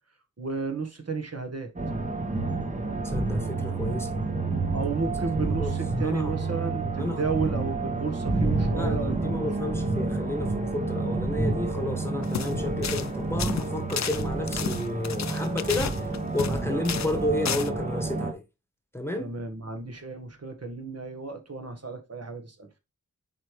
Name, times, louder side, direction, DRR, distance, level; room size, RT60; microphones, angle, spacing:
voice 1, 0.4-1.7 4.7-9.5 16.7-16.9 19.2-22.7, right 4 dB, 50° right, 1.5 m, -32 dB
sound 1, 1.8-18.3, right 2 dB, 25° right, 1.0 m, -29 dB
voice 2, 3.0-4.2 5.6-5.7 6.0-6.3 7.0-7.2 8.7-16.1 16.3-18.4 18.9-19.3, left 1 dB, 10° left, 1.3 m, -31 dB
sound 2, 12.2-12.5 12.8-13.1 13.4-16.6 16.9-17.2 17.5-17.7, left 8 dB, 60° left, 0.5 m, -32 dB
7.4 x 4.7 x 3.3 m
wide cardioid pair, 100°, 31 cm